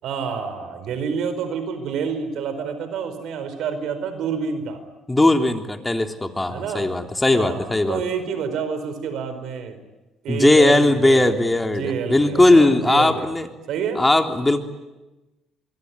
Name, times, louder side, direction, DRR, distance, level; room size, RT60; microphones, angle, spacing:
voice 1, 0.0-4.8 6.5-6.9 7.3-9.8 10.2-11.4 11.7-13.3 13.7-14.0, right 6 dB, 70° right, 10 dB, 4.8 m, -28 dB
voice 2, 5.1-8.0 10.3-13.5 13.9-14.6, left 2 dB, 15° left, 5 dB, 3.5 m, -18 dB
25.0 x 23.0 x 9.8 m, 1.1 s
supercardioid pair, 65°, 0 cm